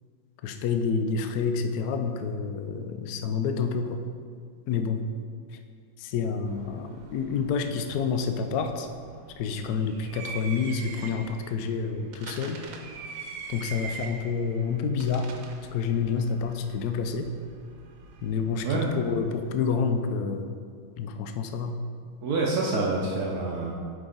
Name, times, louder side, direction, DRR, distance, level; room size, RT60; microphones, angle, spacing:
voice 1, 0.4-4.0 4.7-5.0 5.5-5.6 6.0-8.9 9.4-12.6 13.5-15.3 15.7-17.3 18.2-20.5 21.0-21.7, left 5 dB, 85° left, 7 dB, 0.8 m, -28 dB
sound 1, 6.5-19.5, right 5 dB, 90° right, 1.6 m, -44 dB
voice 2, 22.2-23.7, right 3 dB, 65° right, -3 dB, 1.0 m, -27 dB
8.0 x 5.3 x 3.9 m, 2.2 s
omnidirectional pair, 2.3 m